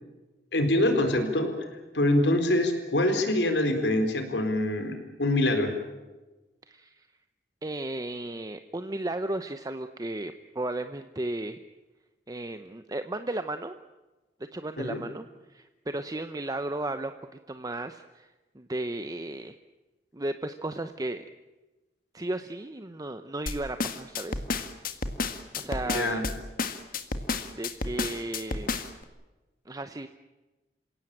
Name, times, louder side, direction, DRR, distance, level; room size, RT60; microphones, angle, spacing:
voice 1, 0.5-1.5 1.9-5.7 14.8-15.0 25.8-26.3, left 1 dB, 85° left, 6 dB, 4.2 m, -25 dB
voice 2, 6.7-7.1 7.6-11.6 12.3-13.7 14.5-15.2 15.5-17.1 17.5-18.3 18.5-19.6 20.1-21.2 22.1-24.4 25.6-26.2 27.5-28.8 29.7-30.1, right 2 dB, 20° right, 9 dB, 0.8 m, -34 dB
sound 1, 23.5-29.0, left 3 dB, 55° left, 1.8 m, -31 dB
27.5 x 17.0 x 8.9 m, 1.1 s
head